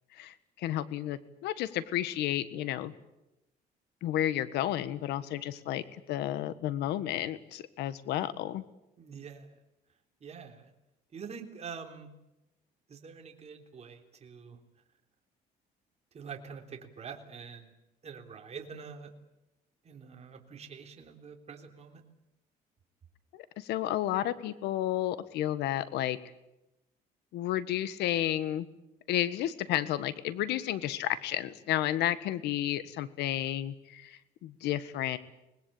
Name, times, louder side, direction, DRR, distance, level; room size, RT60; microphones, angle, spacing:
voice 1, 0.1-2.9 4.0-8.6 23.3-26.2 27.3-28.7 29.1-35.2, left 12 dB, 80° left, 14 dB, 1.6 m, -32 dB
voice 2, 9.0-9.6 10.2-10.7 11.1-12.1 12.9-14.6 16.1-17.7 18.0-19.1 19.8-22.0, right 6 dB, 40° right, 3 dB, 3.4 m, -45 dB
25.0 x 20.5 x 8.6 m, 0.92 s
cardioid pair, 110°, 17 cm